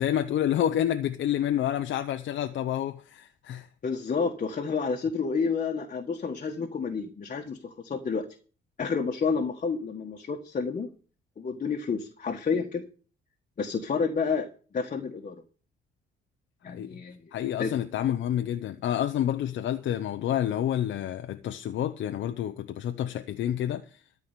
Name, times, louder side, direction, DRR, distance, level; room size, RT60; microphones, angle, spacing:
voice 1, 0.0-3.7 16.7-16.9 17.3-23.8, left 11 dB, 70° left, 0.8 m, -28 dB
voice 2, 3.8-8.2 8.8-10.9 11.4-12.8 13.6-14.5 14.7-15.4 16.6-17.3 17.6-17.7, left 5 dB, 40° left, 1.5 m, -30 dB
13.5 x 4.9 x 8.9 m
cardioid pair, 90°, 20 cm